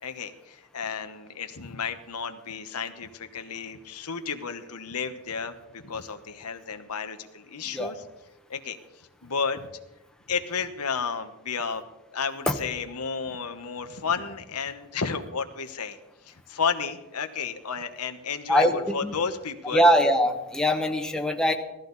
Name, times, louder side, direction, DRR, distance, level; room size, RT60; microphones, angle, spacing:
voice 1, 0.0-8.0 8.5-9.7 10.3-11.8 12.1-16.0 16.2-19.9, left 5 dB, 85° left, 8 dB, 1.2 m, -32 dB
voice 2, 19.7-21.5, equal, 5° left, 3 dB, 1.1 m, -22 dB
17.5 x 14.0 x 4.1 m, 1.0 s
head